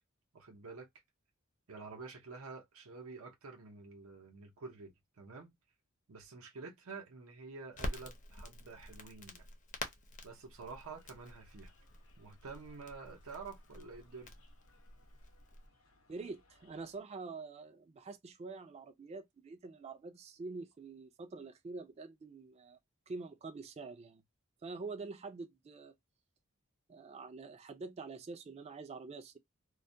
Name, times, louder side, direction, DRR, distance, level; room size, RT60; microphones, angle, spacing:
voice 1, 0.3-0.9 1.7-5.6 6.1-9.5 10.2-11.7 12.2-14.3, right 4 dB, 90° right, 0.6 m, -49 dB
Crackle, 7.7-15.7, left 2 dB, 40° left, 0.6 m, -47 dB
sound 1, 10.9-17.0, left 1 dB, 75° left, 0.7 m, -66 dB
voice 2, 16.1-22.8 23.1-24.2 24.6-26.0 26.9-29.4, right 3 dB, 30° right, 0.3 m, -46 dB
2.3 x 2.1 x 2.6 m
head